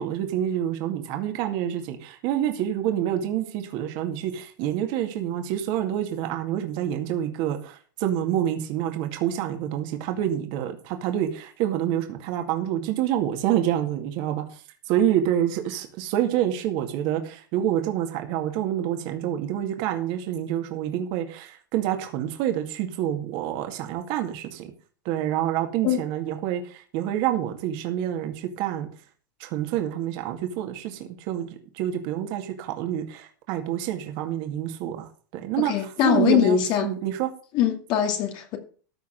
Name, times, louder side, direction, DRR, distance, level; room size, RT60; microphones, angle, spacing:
voice 1, 0.0-24.7 25.1-28.9 29.4-37.3, right 11 dB, 55° right, 2.1 m, -27 dB
voice 2, 35.6-36.9 37.5-38.6, left 10 dB, 50° left, 2.3 m, -22 dB
14.0 x 4.7 x 7.5 m
hypercardioid pair, 110°, 10 cm